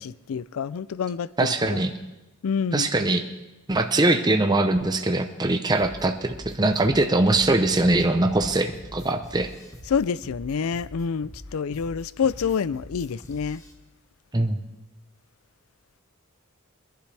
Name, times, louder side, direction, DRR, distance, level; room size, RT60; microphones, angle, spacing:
voice 1, 0.0-1.3 1.6-1.8 2.4-2.9 9.9-13.6, left 6 dB, 75° left, 0.4 m, -27 dB
voice 2, 1.4-1.9 2.7-3.2 3.7-9.5 14.3-14.6, right 2 dB, 20° right, 0.7 m, -22 dB
sound 1, 5.7-13.7, left 1 dB, 15° left, 1.5 m, -43 dB
23.5 x 11.5 x 3.4 m
head